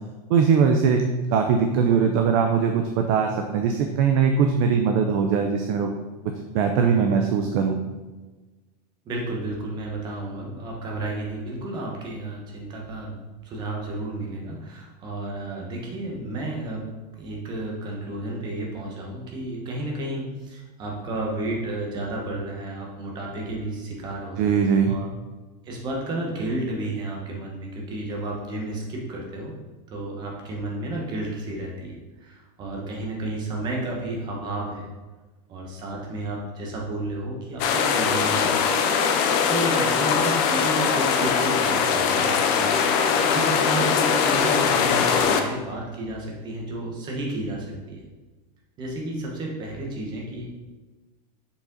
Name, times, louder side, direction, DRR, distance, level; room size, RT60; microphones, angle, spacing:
voice 1, 0.3-1.0 1.3-5.9 6.5-7.8 24.4-25.0, right 6 dB, 35° right, 4 dB, 0.4 m, -21 dB
voice 2, 9.0-13.1 13.4-16.9 17.2-24.5 24.9-25.1 25.6-29.6 29.9-34.9 35.5-38.5 39.5-48.0 48.8-50.5, right 2 dB, 20° right, -1 dB, 1.1 m, -32 dB
sound 1, 37.6-45.4, left 6 dB, 35° left, 0.5 m, -21 dB
6.8 x 4.9 x 3.9 m, 1.2 s
supercardioid pair, 175°, 21 cm